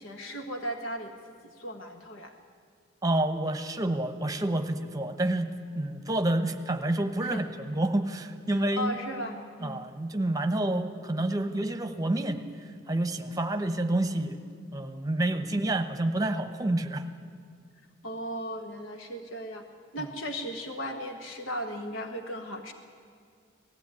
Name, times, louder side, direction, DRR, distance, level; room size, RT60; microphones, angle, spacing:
voice 1, 0.0-2.3 7.2-7.5 8.5-9.8 18.0-19.7 19.9-22.7, equal, 80° left, 5 dB, 1.5 m, -36 dB
voice 2, 3.0-5.5 5.7-9.0 9.6-14.4 14.7-17.0, right 1 dB, 20° right, 8 dB, 1.0 m, -28 dB
18.5 x 14.5 x 9.6 m, 2.3 s
head